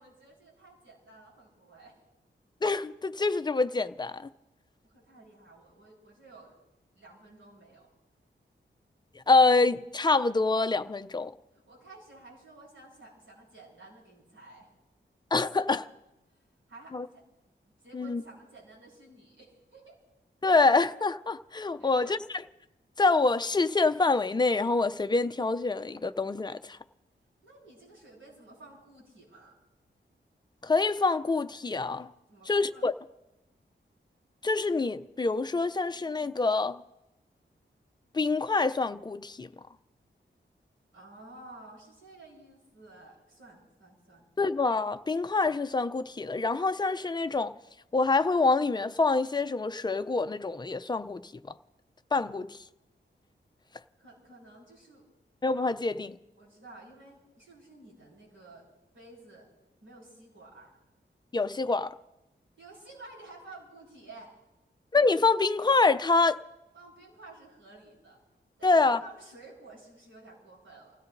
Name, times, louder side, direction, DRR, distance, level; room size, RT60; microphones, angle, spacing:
voice 1, 0.0-1.9 4.8-6.5 6.9-7.9 11.5-14.7 16.7-17.2 17.8-20.0 21.8-22.2 27.4-29.5 32.3-32.9 40.9-44.2 54.0-55.0 56.4-58.7 58.9-59.5 59.8-60.8 62.6-64.3 66.7-68.2 68.6-71.0, right 2 dB, 85° right, 7.7 m, -52 dB
voice 2, 2.6-4.3 9.3-11.3 15.3-15.9 16.9-17.1 17.9-18.2 20.4-22.4 23.0-26.8 30.6-32.1 32.5-32.9 34.4-36.8 38.1-39.5 44.4-47.6 47.9-51.2 52.1-52.6 55.4-56.2 61.3-61.9 64.9-66.4 68.6-69.0, left 3 dB, 20° left, 0.4 m, -26 dB
29.0 x 16.5 x 2.6 m
wide cardioid pair, 130°, 20 cm